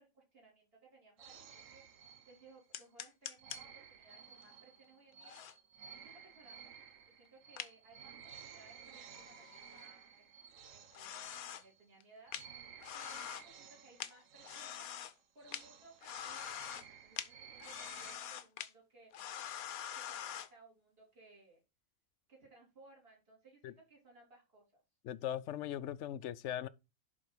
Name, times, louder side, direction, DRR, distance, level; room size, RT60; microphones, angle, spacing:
voice 1, 0.0-1.8 2.3-5.4 6.0-6.7 7.1-10.3 10.7-12.4 12.9-14.9 15.4-16.7 17.0-19.1 19.9-21.6 22.3-24.8, right 3 dB, 40° right, 3.7 m, -62 dB
sound 1, 1.2-2.8 3.4-12.0 12.3-18.2, right 7 dB, 65° right, 1.3 m, -55 dB
sound 2, 2.7-3.6 5.2-5.5 7.6-7.7 9.1-9.8 10.9-11.6 12.0-12.1 12.3-12.4 12.8-13.5 14.0-15.1 15.5-15.6 16.0-16.9 17.2-17.3 17.6-18.7 19.1-20.5, left 10 dB, 85° left, 1.2 m, -44 dB
voice 2, 25.0-26.7, left 11 dB, 65° left, 0.8 m, -39 dB
11.0 x 4.1 x 4.8 m
omnidirectional pair, 1.5 m